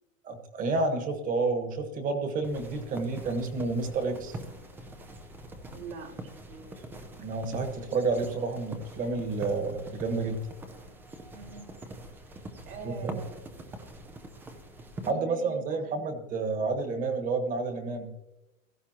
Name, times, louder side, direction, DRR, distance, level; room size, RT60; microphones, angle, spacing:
voice 1, 0.2-4.4 7.2-10.4 13.0-13.2 15.1-18.1, right 3 dB, 20° right, 7 dB, 1.5 m, -30 dB
sound 1, 2.4-15.1, right 1 dB, 5° right, 0.4 m, -44 dB
voice 2, 5.7-6.9 11.3-11.8 12.7-13.4 15.0-16.0, right 5 dB, 80° right, 0 dB, 4.3 m, -44 dB
16.0 x 13.5 x 2.9 m, 0.93 s
supercardioid pair, 155°, 39 cm